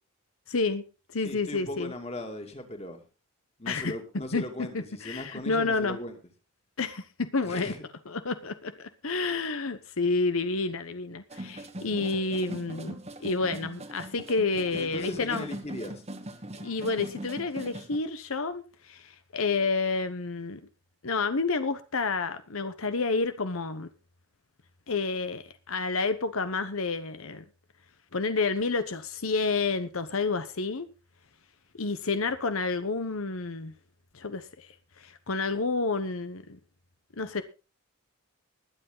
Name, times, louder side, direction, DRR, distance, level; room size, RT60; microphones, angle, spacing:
voice 1, 0.5-0.8 1.1-1.9 3.7-4.0 4.3-4.4 4.7-6.0 6.8-7.7 8.1-12.9 13.2-15.5 16.5-20.6 21.0-23.9 24.9-27.4 28.1-30.9 31.8-33.7 34.1-34.7 35.0-36.6 37.2-37.4, left 3 dB, 80° left, 1.0 m, -29 dB
voice 2, 1.2-3.1 3.6-6.1 7.4-7.8 14.7-16.0, left 1 dB, 30° left, 2.5 m, -38 dB
sound 1, 11.3-18.0, right 1 dB, 30° right, 1.4 m, -41 dB
21.5 x 8.1 x 3.9 m
head